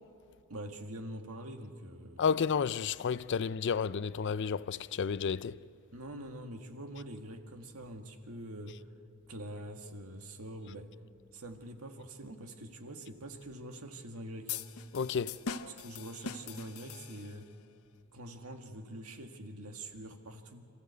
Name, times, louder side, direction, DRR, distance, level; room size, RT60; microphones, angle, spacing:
voice 1, 0.5-2.2 5.9-8.8 9.3-10.9 11.3-14.6 15.7-17.5 18.1-20.6, right 1 dB, 85° right, 1.8 m, -45 dB
voice 2, 2.2-5.6 14.9-15.4, left 6 dB, 55° left, 0.4 m, -31 dB
sound 1, 14.5-17.6, left 6 dB, 90° left, 0.8 m, -42 dB
27.0 x 15.0 x 8.2 m
head